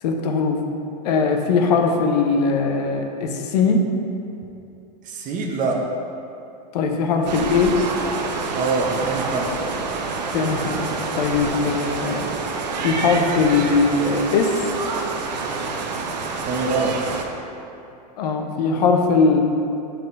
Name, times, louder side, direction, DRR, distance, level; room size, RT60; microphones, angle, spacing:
voice 1, 0.0-0.6 1.0-3.9 6.7-7.8 10.3-10.8 11.2-12.3 12.8-14.6 18.2-19.4, left 4 dB, 70° left, 4 dB, 0.8 m, -20 dB
voice 2, 5.1-5.8 8.5-9.5 16.4-17.2, right 4 dB, 40° right, 1 dB, 0.9 m, -24 dB
sound 1, 7.3-17.2, right 4 dB, 85° right, 0.7 m, -27 dB
5.3 x 4.3 x 5.3 m, 2.8 s
hypercardioid pair, 115°, 21 cm